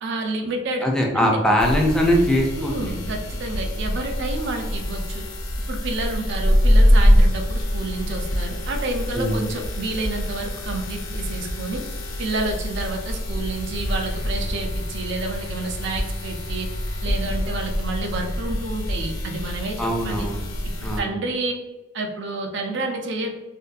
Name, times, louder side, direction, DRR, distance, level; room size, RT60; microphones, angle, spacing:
voice 1, 0.0-0.9 1.2-1.4 2.6-5.2 5.7-11.8 12.2-16.7 17.0-20.3 20.8-21.6 21.9-23.3, right 2 dB, 60° right, 3 dB, 0.4 m, -29 dB
voice 2, 0.8-3.0 9.1-9.4 19.8-20.5 20.8-21.1, equal, 5° left, 0 dB, 0.3 m, -21 dB
sound 1, 1.6-21.0, equal, 75° left, 0.5 m, -24 dB
2.6 x 2.2 x 2.4 m, 1.1 s
head